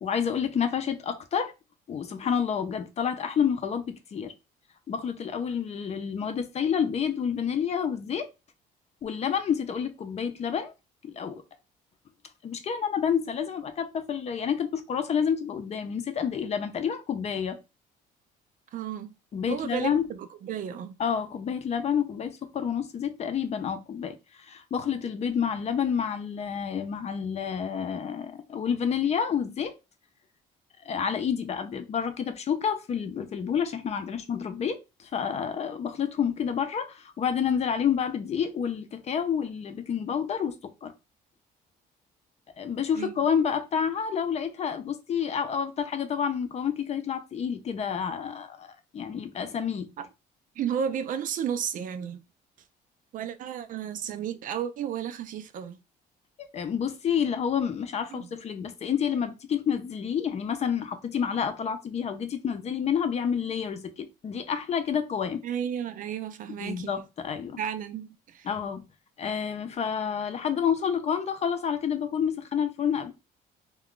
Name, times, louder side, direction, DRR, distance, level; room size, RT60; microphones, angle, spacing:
voice 1, 0.0-1.5 1.9-4.3 4.9-8.3 9.0-10.7 11.0-11.4 12.4-17.6 19.3-20.0 21.0-29.8 30.8-40.9 42.6-49.9 56.5-65.4 66.6-67.6 68.4-68.8 69.2-73.1, left 7 dB, 40° left, 0.6 m, -29 dB
voice 2, 18.7-19.1 19.5-21.0 43.0-43.1 50.6-52.2 53.1-55.8 58.1-58.3 65.4-67.0 67.6-68.5, right 8 dB, 55° right, 0.4 m, -33 dB
2.4 x 2.3 x 3.6 m
cardioid pair, 110°, 17 cm